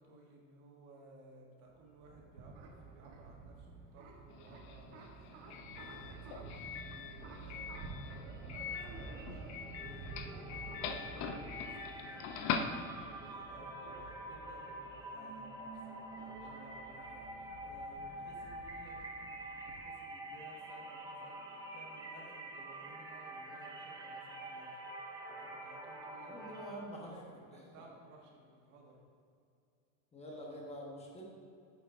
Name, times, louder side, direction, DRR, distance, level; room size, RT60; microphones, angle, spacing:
voice 1, 0.0-17.1 17.6-24.7 25.3-29.0, right 2 dB, 55° right, -1 dB, 1.7 m, -58 dB
sound 1, 1.7-19.8, right 4 dB, 85° right, 1.2 m, -51 dB
Doorbell, 4.3-13.3, left 6 dB, 50° left, 0.6 m, -43 dB
sound 2, 8.1-8.4 8.6-26.8, right 1 dB, 10° right, 0.8 m, -47 dB
voice 2, 26.2-27.2 27.5-27.6 30.1-31.2, equal, 15° left, -2 dB, 1.1 m, -47 dB
9.0 x 8.5 x 2.6 m, 2.4 s
supercardioid pair, 145°, 36 cm